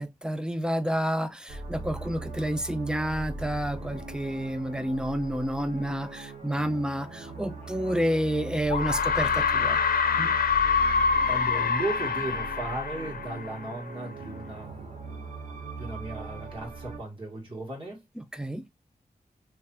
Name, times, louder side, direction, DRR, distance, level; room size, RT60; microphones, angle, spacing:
voice 1, 0.0-9.8 10.1-10.4 18.2-18.6, equal, 5° right, 0.5 m, -29 dB
sound 1, 1.5-17.0, right 3 dB, 55° right, 1.0 m, -40 dB
sound 2, 7.9-8.0 8.7-13.9, left 6 dB, 90° left, 0.6 m, -26 dB
voice 2, 11.3-15.1 15.7-18.0, right 2 dB, 35° right, 2.1 m, -36 dB
3.3 x 3.3 x 2.9 m
wide cardioid pair, 100°, 15 cm